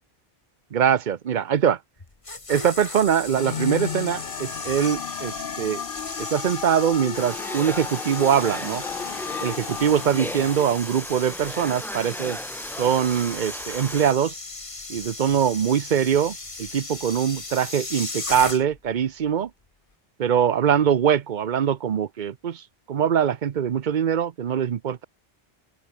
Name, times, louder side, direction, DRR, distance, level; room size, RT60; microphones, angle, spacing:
voice 1, 0.7-1.8 2.5-5.8 6.2-8.8 9.4-12.4 12.8-14.3 14.9-19.5 20.2-22.6 22.9-25.1, right 8 dB, 55° right, 0.8 m, -23 dB
sound 1, 2.0-18.9 19.2-19.5, left 3 dB, 30° left, 1.7 m, -37 dB
sound 2, 3.3-10.8, left 8 dB, 60° left, 1.0 m, -34 dB
Domestic sounds home sounds, 7.1-14.1, equal, ahead, 1.0 m, -36 dB
open air
omnidirectional pair, 1.0 m